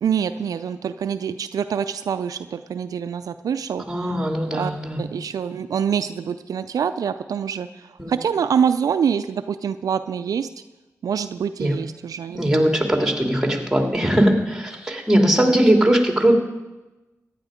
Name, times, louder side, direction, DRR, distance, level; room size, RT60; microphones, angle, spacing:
voice 1, 0.0-4.1 4.5-4.7 5.0-7.7 8.1-10.5 11.0-12.8, right 7 dB, 80° right, 11 dB, 0.4 m, -25 dB
voice 2, 3.9-5.1 8.0-8.1 11.6-11.7 12.3-16.3, right 1 dB, 10° right, 3 dB, 2.9 m, -20 dB
14.5 x 10.0 x 5.0 m, 1.1 s
cardioid pair, 40°, 6 cm